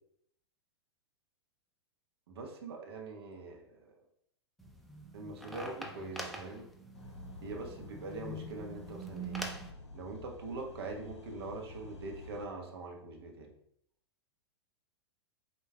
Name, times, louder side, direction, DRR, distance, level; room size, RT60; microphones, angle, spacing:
voice 1, 2.3-3.9 5.1-6.7 7.4-9.4 9.9-13.5, right 3 dB, 65° right, 1 dB, 1.2 m, -43 dB
sound 1, 4.6-9.7, right 2 dB, ahead, 0.6 m, -44 dB
sound 2, 6.9-12.5, left 2 dB, 85° left, 0.6 m, -50 dB
8.0 x 3.0 x 2.3 m, 0.70 s
figure-of-eight pair, 100°, 14 cm